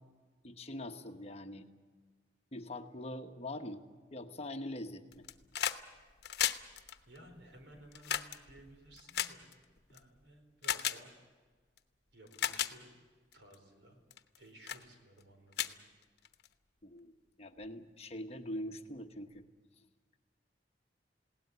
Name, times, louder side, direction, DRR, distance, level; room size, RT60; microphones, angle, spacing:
voice 1, 0.4-1.7 2.5-3.8 4.1-5.3 16.8-17.1 17.4-19.4, left 1 dB, 35° left, 6 dB, 1.1 m, -43 dB
sound 1, 5.1-5.8 6.1-10.0 10.6-11.0 11.8-11.9 12.3-12.7 13.3-13.6 14.1-14.4 14.7-14.8 15.2-15.3 15.5-16.5 17.6-17.7, left 10 dB, 60° left, 1.0 m, -35 dB
voice 2, 7.1-9.5 9.9-11.1 12.1-12.9 13.3-14.0 14.4-15.8, right 1 dB, 75° right, 4 dB, 4.5 m, -57 dB
21.0 x 17.5 x 9.6 m, 1.4 s
head